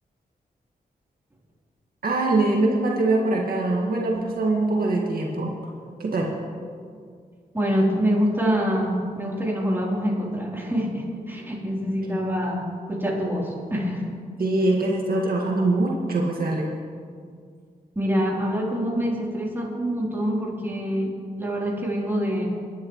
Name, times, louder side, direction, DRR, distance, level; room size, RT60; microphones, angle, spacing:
voice 1, 2.0-5.5 6.0-6.3 14.4-16.7, right 2 dB, 65° right, -2 dB, 1.8 m, -23 dB
voice 2, 7.5-14.1 18.0-22.5, equal, 15° right, -4 dB, 3.4 m, -25 dB
23.0 x 11.0 x 3.1 m, 2.1 s
cardioid pair, 75°, 16 cm